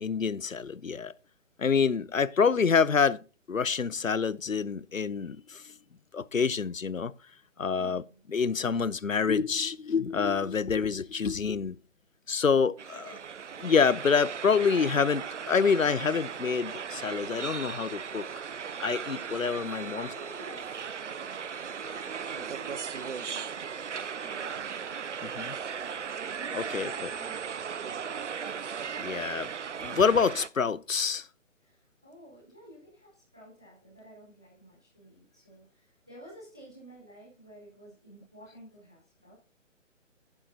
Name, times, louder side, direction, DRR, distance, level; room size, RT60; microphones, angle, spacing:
voice 1, 0.0-1.1 1.6-5.6 6.1-7.1 7.6-8.0 8.3-11.8 12.3-13.2 13.6-18.4 18.8-20.1 25.2-25.5 26.5-27.1 29.0-29.5 29.8-31.3, left 5 dB, 85° left, 0.7 m, -27 dB
voice 2, 7.7-8.2 12.9-13.2 19.5-20.9 21.7-24.7 31.6-39.3, equal, 5° right, 0.5 m, -52 dB
sound 1, 12.8-30.5, right 7 dB, 65° right, 0.6 m, -37 dB
11.0 x 10.5 x 2.7 m
figure-of-eight pair, 140°, 39 cm